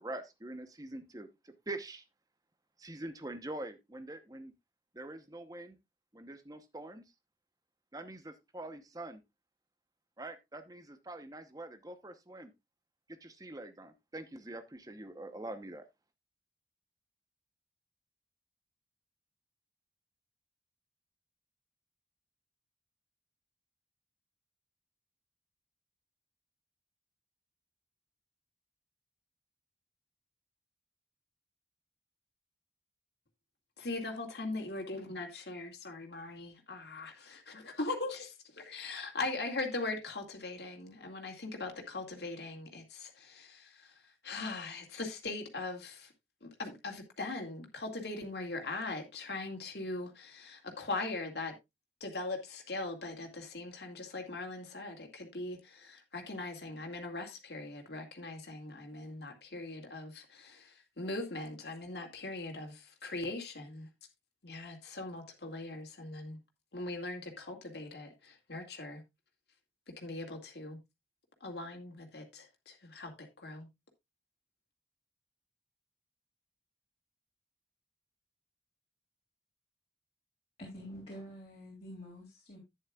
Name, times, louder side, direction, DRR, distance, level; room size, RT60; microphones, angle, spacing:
voice 1, 0.0-2.0 2.8-4.5 4.9-5.8 6.1-7.0 7.9-9.2 10.2-12.5 13.1-15.8, right 2 dB, 20° right, 0.9 m, -44 dB
voice 2, 33.8-46.1 46.4-51.5 52.0-63.9 64.4-66.4 66.7-69.0 70.0-70.8 71.4-73.7, left 2 dB, 65° left, 2.3 m, -40 dB
voice 3, 80.6-82.6, equal, 35° left, 3.3 m, -47 dB
11.0 x 9.6 x 2.4 m
head